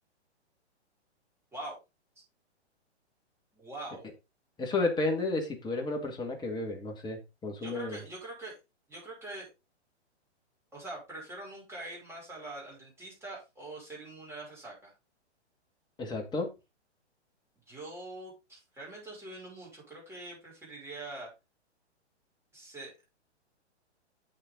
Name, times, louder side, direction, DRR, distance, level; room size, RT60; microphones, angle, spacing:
voice 1, 3.5-4.1 7.6-8.5 8.9-9.5 10.7-14.9 17.7-21.3 22.5-22.9, right 2 dB, 5° right, -5 dB, 5.5 m, -43 dB
voice 2, 4.6-8.0 16.0-16.5, left 2 dB, 10° left, 3 dB, 1.9 m, -32 dB
8.1 x 6.7 x 3.8 m, 0.26 s
hypercardioid pair, 130°, 34 cm